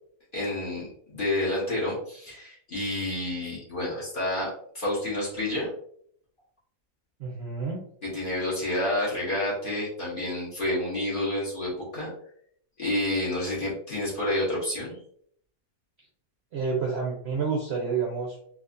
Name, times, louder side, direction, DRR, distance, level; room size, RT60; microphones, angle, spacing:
voice 1, 0.3-5.7 8.0-12.1 12.8-15.0, left 1 dB, 35° left, -7 dB, 1.5 m, -29 dB
voice 2, 7.2-7.8 16.5-18.5, right 5 dB, 55° right, -2 dB, 0.8 m, -29 dB
3.9 x 2.8 x 2.5 m, 0.63 s
omnidirectional pair, 1.7 m